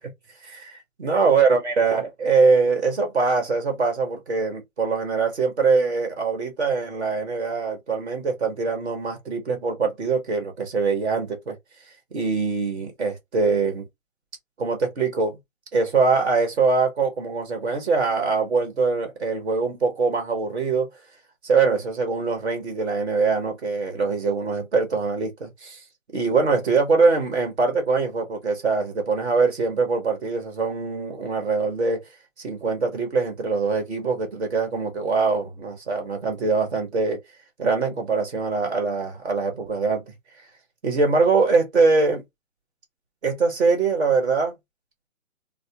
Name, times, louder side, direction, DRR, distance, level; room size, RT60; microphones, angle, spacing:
voice 1, 0.4-11.5 12.1-13.9 14.6-15.4 15.7-20.9 21.4-25.8 26.1-32.0 32.4-37.2 37.6-40.0 40.8-42.2 43.2-44.5, right 4 dB, 50° right, 1.5 m, -23 dB
3.2 x 2.1 x 2.8 m
hypercardioid pair, 160°, 41 cm